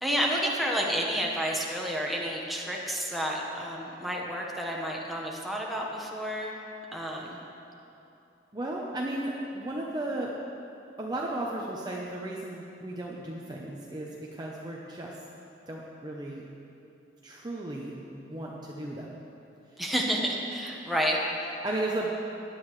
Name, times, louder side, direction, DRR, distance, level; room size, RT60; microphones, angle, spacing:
voice 1, 0.0-6.6 6.9-7.4 19.8-21.5, equal, ahead, -2 dB, 1.3 m, -30 dB
voice 2, 8.5-10.3 11.0-15.1 15.7-16.4 17.2-19.2 21.6-22.1, right 1 dB, 25° right, -3 dB, 0.8 m, -35 dB
17.0 x 11.0 x 3.2 m, 2.8 s
head